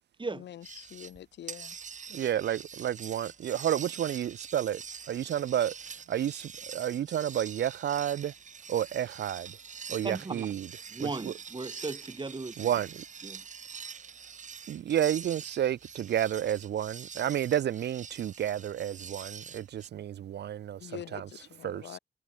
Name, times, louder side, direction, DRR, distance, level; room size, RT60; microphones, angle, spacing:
voice 1, 0.3-1.8 20.8-22.0, left 11 dB, 85° left, 3.1 m, -45 dB
sound 1, 0.6-1.2 1.5-19.9, right 6 dB, 45° right, 0.9 m, -45 dB
voice 2, 2.1-4.8 5.1-5.7 6.1-8.3 8.7-9.5 9.9-10.7 11.0-11.3 12.6-13.0 14.7-21.3 21.6-22.0, right 10 dB, 75° right, 1.0 m, -31 dB
voice 3, 10.0-10.5 10.9-12.7 13.2-13.4, right 3 dB, 25° right, 3.5 m, -37 dB
cardioid pair, 70°, 18 cm